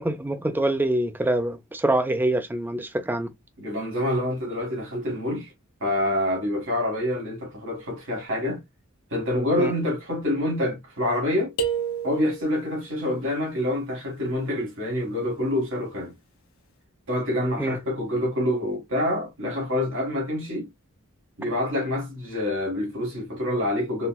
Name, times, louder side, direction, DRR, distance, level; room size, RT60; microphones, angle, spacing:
voice 1, 0.0-3.3 9.6-9.7 17.6-17.8, right 1 dB, 10° right, 0.4 m, -25 dB
voice 2, 3.6-5.5 5.8-8.6 9.1-11.5 12.0-16.1 17.1-20.7 21.4-24.1, left 1 dB, 65° right, 1.6 m, -26 dB
sound 1, 11.6-12.7, right 6 dB, 70° left, 1.1 m, -29 dB
4.2 x 2.2 x 2.2 m
head